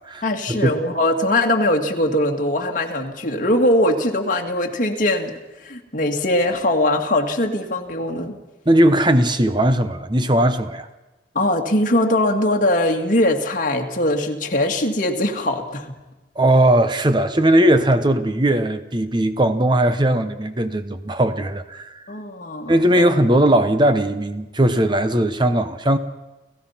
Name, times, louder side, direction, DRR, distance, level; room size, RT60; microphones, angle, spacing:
voice 1, 0.2-5.3 5.6-8.4 11.3-16.0 22.1-23.0, left 1 dB, 50° left, 2.1 m, -21 dB
voice 2, 8.7-10.9 16.4-22.0 22.7-26.0, right 1 dB, 25° right, 0.9 m, -18 dB
30.0 x 15.5 x 5.8 m
head